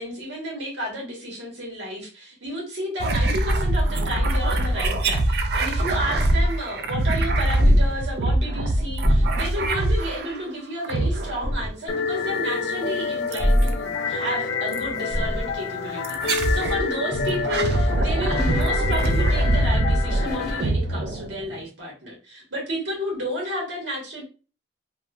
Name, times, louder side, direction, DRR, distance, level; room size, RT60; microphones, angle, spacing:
voice 1, 0.0-24.2, equal, 80° right, 1.3 m, -32 dB
sound 1, 3.0-10.4 10.8-11.6 13.3-13.7 14.7-14.9 16.0-16.8 17.3-21.6, right 1 dB, 60° right, 0.4 m, -23 dB
sound 2, 6.1-6.5 7.6-7.9 9.0-9.3 11.4-11.7 13.4-13.8 15.1-15.6 17.1-17.4 18.4-18.6 20.3-20.7, equal, ahead, 0.6 m, -21 dB
sound 3, 11.9-20.6, left 5 dB, 90° left, 0.4 m, -28 dB
2.9 x 2.1 x 2.3 m
head